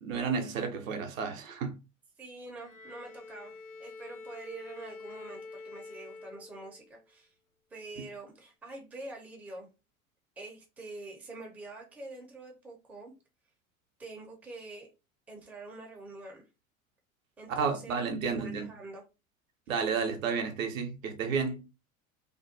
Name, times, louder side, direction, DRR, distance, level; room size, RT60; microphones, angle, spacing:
voice 1, 0.0-1.8 17.5-18.6 19.7-21.7, right 5 dB, 70° right, 0.7 m, -31 dB
voice 2, 2.2-7.3 7.7-9.7 10.4-13.1 14.0-14.9 15.3-16.4 17.4-19.0, right 2 dB, 5° right, 0.5 m, -46 dB
Bowed string instrument, 2.6-7.0, left 3 dB, 85° left, 0.5 m, -47 dB
2.5 x 2.2 x 2.5 m
figure-of-eight pair, 75°, 42 cm